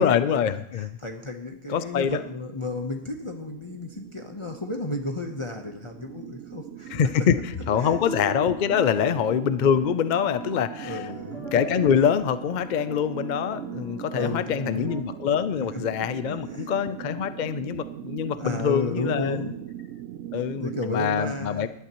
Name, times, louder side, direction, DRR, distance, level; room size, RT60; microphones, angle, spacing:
voice 1, 0.0-1.0 1.7-2.2 6.9-11.0 11.5-19.5 20.3-21.7, left 8 dB, 60° left, 12 dB, 0.5 m, -25 dB
voice 2, 0.7-7.3 7.8-7.9 8.9-9.2 10.8-11.5 13.7-13.9 14.1-14.9 16.3-16.7 18.4-19.6 20.6-21.7, left 2 dB, 25° left, 3 dB, 0.8 m, -33 dB
sound 1, 1.7-20.8, right 12 dB, 75° right, 0.9 m, -40 dB
sound 2, 7.5-15.0, left 1 dB, 5° left, 3.8 m, -40 dB
18.5 x 11.5 x 3.0 m, 0.76 s
omnidirectional pair, 1.3 m